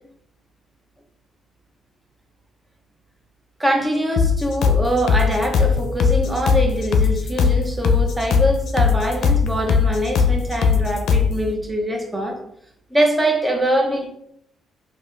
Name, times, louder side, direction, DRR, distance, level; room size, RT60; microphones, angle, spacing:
voice 1, 3.6-12.4 12.9-14.1, right 1 dB, 10° right, 2 dB, 0.9 m, -23 dB
sound 1, 4.2-11.4, left 6 dB, 70° left, 0.5 m, -18 dB
4.9 x 2.8 x 3.4 m, 0.73 s
cardioid pair, 90°, 0 cm